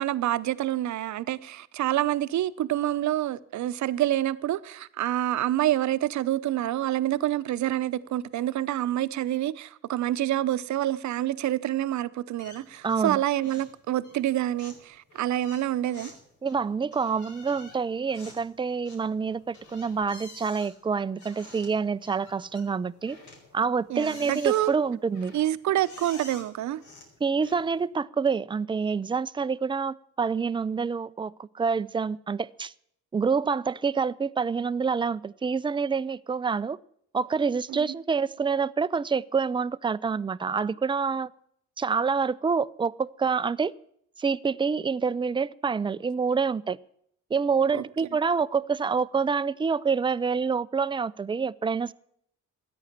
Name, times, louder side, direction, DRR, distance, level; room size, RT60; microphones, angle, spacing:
voice 1, 0.0-16.1 23.9-24.7 25.3-26.8 37.7-37.8 47.7-47.8, right 13 dB, 70° right, 0.8 m, -27 dB
sound 1, 12.4-13.1 13.4-13.8 14.0-27.8, left 3 dB, 75° left, 4.9 m, -49 dB
voice 2, 12.8-13.2 16.4-23.2 23.5-25.3 27.2-32.7 33.1-36.8 37.1-41.3 41.8-43.7 44.2-46.8 47.3-51.9, right 5 dB, 15° right, 0.5 m, -27 dB
14.0 x 9.7 x 7.4 m
cardioid pair, 90°, 30 cm